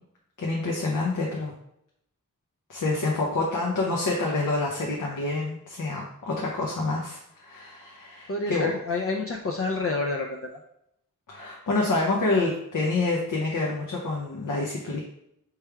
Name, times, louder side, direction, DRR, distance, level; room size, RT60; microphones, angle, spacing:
voice 1, 0.4-1.5 2.7-8.7 11.3-15.0, left 2 dB, 70° left, -2 dB, 0.8 m, -27 dB
voice 2, 8.3-10.6, left 3 dB, 45° left, 1 dB, 0.5 m, -28 dB
3.3 x 3.2 x 4.6 m, 0.76 s
wide cardioid pair, 105°, 33 cm